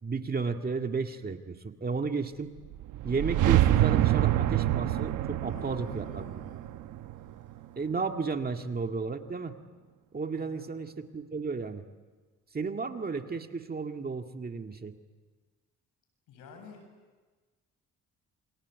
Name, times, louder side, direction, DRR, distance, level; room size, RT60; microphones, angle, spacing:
voice 1, 0.0-2.5 3.0-6.5 7.8-9.6 10.1-11.9 12.5-15.0, right 4 dB, 30° right, 5 dB, 2.0 m, -33 dB
sound 1, 2.6-7.8, right 13 dB, 85° right, 1.1 m, -27 dB
voice 2, 5.5-6.7 7.5-7.6 10.3-10.7 16.3-16.8, left 5 dB, 90° left, 4 dB, 8.0 m, -51 dB
28.0 x 25.0 x 8.2 m, 1.3 s
cardioid pair, 90°, 30 cm